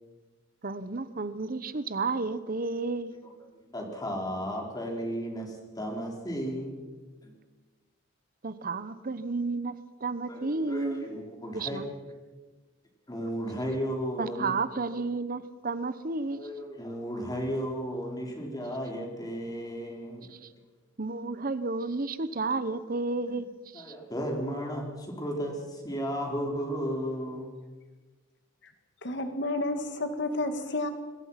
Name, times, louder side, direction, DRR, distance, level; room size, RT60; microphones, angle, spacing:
voice 1, 0.6-3.1 8.4-9.7 10.0-11.0 11.5-11.8 14.2-16.4 20.3-20.5 21.0-24.0, right 3 dB, 45° right, 13 dB, 0.9 m, -32 dB
voice 2, 3.5-6.8 7.2-7.3 10.3-11.8 13.1-14.5 16.3-20.3 23.3-23.4 23.7-27.5, equal, 20° left, 1 dB, 4.6 m, -34 dB
voice 3, 29.0-30.9, left 2 dB, 65° left, 8 dB, 2.0 m, -31 dB
26.5 x 21.0 x 5.8 m, 1.3 s
head